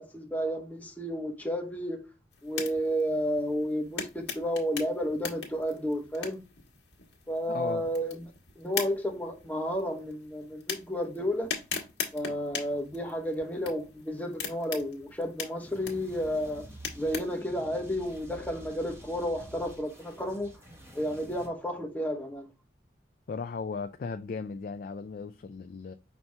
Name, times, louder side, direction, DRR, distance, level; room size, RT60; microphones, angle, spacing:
voice 1, 0.0-2.0 2.4-6.4 7.3-8.3 8.6-11.5 12.1-16.7 17.0-20.6 20.9-22.5, equal, 10° left, 0.7 m, -32 dB
sound 1, 2.3-17.4, left 6 dB, 80° left, 1.4 m, -41 dB
voice 2, 7.5-7.8 23.3-26.0, left 4 dB, 55° left, 0.3 m, -36 dB
sound 2, 15.6-21.5, equal, 15° right, 1.0 m, -49 dB
5.8 x 2.7 x 3.3 m
head